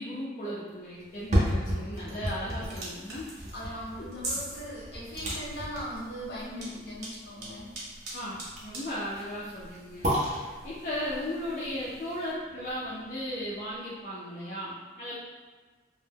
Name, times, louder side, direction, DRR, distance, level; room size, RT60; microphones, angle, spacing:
voice 1, 0.0-3.3 3.6-4.1 8.1-10.1 10.6-15.1, equal, 45° left, -8 dB, 0.4 m, -36 dB
sound 1, 1.0-13.1 13.5-13.6, equal, 40° right, 0.5 m, -34 dB
sound 2, 2.6-12.3, right 2 dB, 80° right, 0.8 m, -44 dB
voice 2, 3.5-7.7, equal, 75° left, -7 dB, 0.9 m, -39 dB
2.1 x 2.0 x 3.3 m, 1.4 s
head